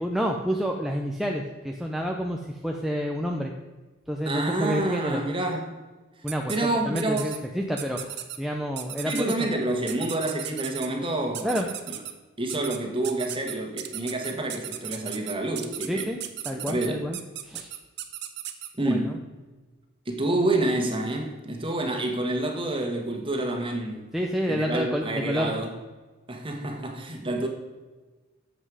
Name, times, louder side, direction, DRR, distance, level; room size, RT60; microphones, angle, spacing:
voice 1, 0.0-3.5 4.1-5.2 6.2-9.3 11.4-11.7 15.9-16.2 16.4-17.2 17.4-17.7 18.8-19.2 24.1-25.6, equal, ahead, 1 dB, 0.6 m, -29 dB
voice 2, 4.2-5.8 6.5-7.3 9.0-11.7 12.4-16.1 16.7-17.1 18.8-19.2 20.0-24.1 24.5-25.7 26.3-27.5, right 1 dB, 25° right, 3 dB, 1.6 m, -28 dB
sound 1, 6.3-6.6 7.0-7.4 7.8-8.4 8.8-9.4 9.9-10.9 11.3-12.1 12.5-12.8 13.0-18.7, right 12 dB, 55° right, 0.9 m, -35 dB
13.0 x 7.9 x 4.9 m, 1.3 s
head